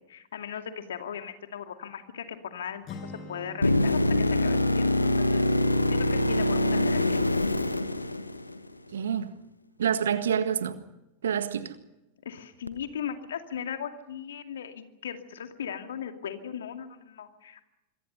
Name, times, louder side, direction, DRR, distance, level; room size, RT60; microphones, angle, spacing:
voice 1, 0.1-5.4 5.9-7.2 12.2-17.6, left 8 dB, 65° left, 2.4 m, -38 dB
Acoustic guitar, 2.8-6.8, left 3 dB, 35° left, 6.3 m, -47 dB
sound 1, 3.6-8.7 12.7-12.8, left 1 dB, 85° left, 1.3 m, -24 dB
voice 2, 8.9-9.3 9.8-10.8 11.2-11.8, right 8 dB, 65° right, 1.6 m, -27 dB
26.0 x 23.0 x 5.6 m
figure-of-eight pair, 90°, 0 cm